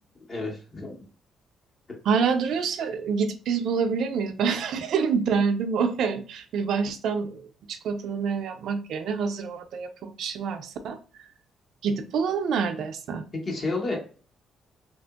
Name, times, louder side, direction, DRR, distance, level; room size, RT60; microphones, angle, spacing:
voice 1, 0.3-1.0 13.4-14.0, left 3 dB, 40° left, -1 dB, 1.2 m, -30 dB
voice 2, 2.1-11.0 11.8-13.2, right 6 dB, 75° right, 8 dB, 0.4 m, -27 dB
2.9 x 2.5 x 2.4 m, 0.38 s
cardioid pair, 90°, 0 cm